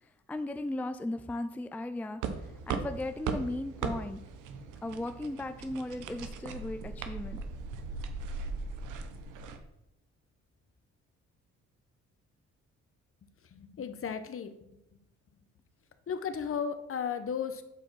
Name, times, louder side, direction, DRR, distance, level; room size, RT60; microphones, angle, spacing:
voice 1, 0.0-4.2 4.8-7.4, left 2 dB, 5° left, 9 dB, 0.4 m, -37 dB
sound 1, 2.2-9.6, right 5 dB, 90° right, 0.9 m, -38 dB
voice 2, 13.5-14.7 16.1-17.6, left 7 dB, 45° left, 10 dB, 0.9 m, -35 dB
8.3 x 4.3 x 5.6 m, 0.85 s
cardioid pair, 90°, 30 cm